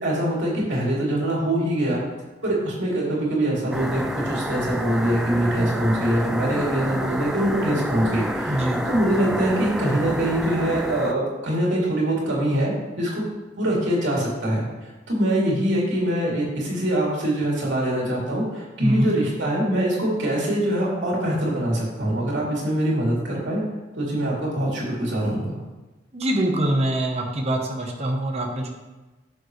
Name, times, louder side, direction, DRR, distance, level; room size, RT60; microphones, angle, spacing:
voice 1, 0.0-2.0 2.4-13.2 13.6-23.6 24.0-25.6, right 1 dB, 75° right, -4 dB, 3.1 m, -24 dB
sound 1, 3.7-11.1, equal, 5° right, 0.4 m, -28 dB
voice 2, 8.5-8.8 18.8-19.1 26.1-28.7, right 1 dB, 35° right, 1 dB, 1.1 m, -24 dB
10.5 x 7.2 x 3.2 m, 1.1 s
head